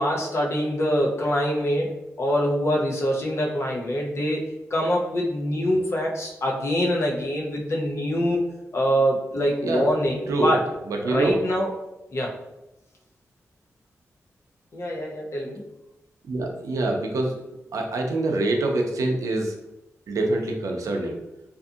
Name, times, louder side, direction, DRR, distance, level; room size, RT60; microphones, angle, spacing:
voice 1, 0.0-4.4 4.7-8.4 8.7-10.6 11.1-11.7 12.1-12.3 14.7-15.6, equal, 55° left, -1 dB, 0.6 m, -24 dB
voice 2, 10.9-11.4 16.3-17.4 17.7-19.5 20.1-21.1, right 2 dB, 85° right, 1 dB, 0.5 m, -25 dB
2.6 x 2.5 x 2.4 m, 0.94 s
wide cardioid pair, 120°, 5 cm